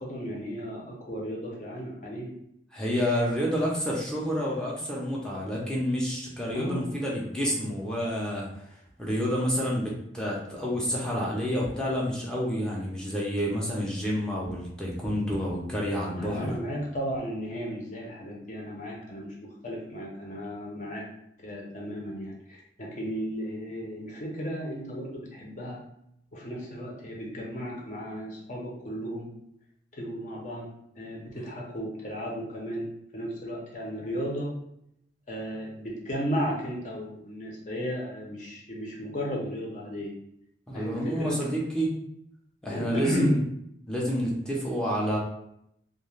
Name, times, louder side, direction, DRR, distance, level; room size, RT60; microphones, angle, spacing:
voice 1, 0.0-2.3 6.5-6.9 16.2-19.3 19.6-21.0 21.4-25.8 26.3-29.3 29.9-30.7 31.0-34.5 35.3-40.1 40.7-41.4 42.7-43.4, equal, 45° left, -3 dB, 0.7 m, -34 dB
voice 2, 2.7-8.5 9.0-16.6 31.3-31.4 40.7-41.9 42.6-43.4 43.9-45.2, equal, 5° left, -4 dB, 0.5 m, -29 dB
2.3 x 2.2 x 3.1 m, 0.76 s
head